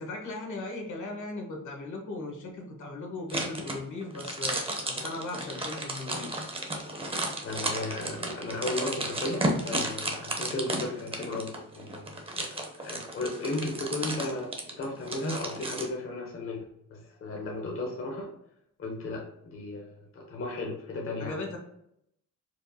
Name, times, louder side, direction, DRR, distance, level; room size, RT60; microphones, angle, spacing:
voice 1, 0.0-6.5 21.2-21.6, left 2 dB, 75° left, 1 dB, 1.2 m, -38 dB
sound 1, 3.3-15.9, right 1 dB, 20° right, 0.7 m, -33 dB
voice 2, 7.4-14.5 14.8-16.6 16.9-18.3 18.8-21.6, left 2 dB, 45° left, -1 dB, 0.7 m, -35 dB
4.5 x 2.5 x 2.7 m, 0.76 s
wide cardioid pair, 150°, 30 cm